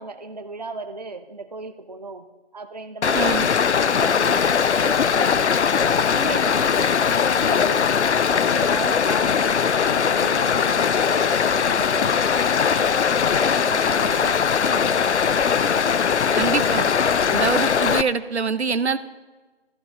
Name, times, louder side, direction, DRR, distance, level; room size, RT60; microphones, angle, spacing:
voice 1, 0.0-2.3 2.5-3.4 3.8-7.9 8.3-13.0 13.3-15.2, right 3 dB, 40° right, 8 dB, 0.5 m, -36 dB
Stream, 3.0-18.0, left 7 dB, 90° left, 0.5 m, -20 dB
voice 2, 3.1-3.5 16.4-16.9 17.3-19.0, right 5 dB, 80° right, 14 dB, 0.7 m, -24 dB
14.5 x 13.5 x 2.2 m, 1.2 s
figure-of-eight pair, 165°, 33 cm